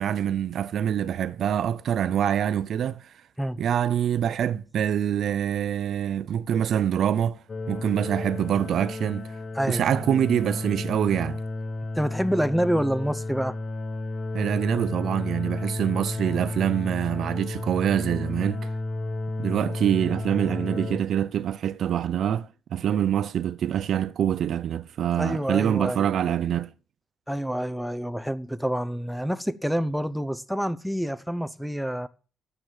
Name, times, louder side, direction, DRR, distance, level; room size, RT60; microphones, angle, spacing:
voice 1, 0.0-3.1 3.6-7.4 7.7-9.3 9.7-11.4 14.3-18.7 19.4-26.7, right 9 dB, 65° right, 0.5 m, -25 dB
sound 1, 7.5-21.0, left 2 dB, 35° left, 1.3 m, -32 dB
voice 2, 11.9-13.6 25.1-26.1 27.3-32.1, equal, ahead, 0.8 m, -27 dB
9.8 x 7.7 x 6.6 m
cardioid pair, 90°, 0 cm